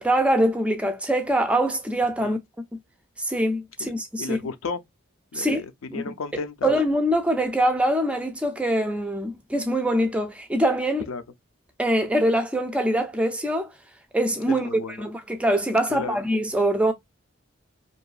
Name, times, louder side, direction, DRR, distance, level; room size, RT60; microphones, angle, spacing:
voice 1, 0.0-2.4 3.2-4.4 5.3-5.6 5.9-6.0 6.6-11.0 11.8-13.7 14.1-16.9, right 1 dB, 5° right, 0.3 m, -23 dB
voice 2, 4.2-4.8 5.3-6.7 11.1-11.2 14.4-15.1 15.9-16.2, left 4 dB, 85° left, 0.5 m, -33 dB
2.6 x 2.3 x 2.3 m
head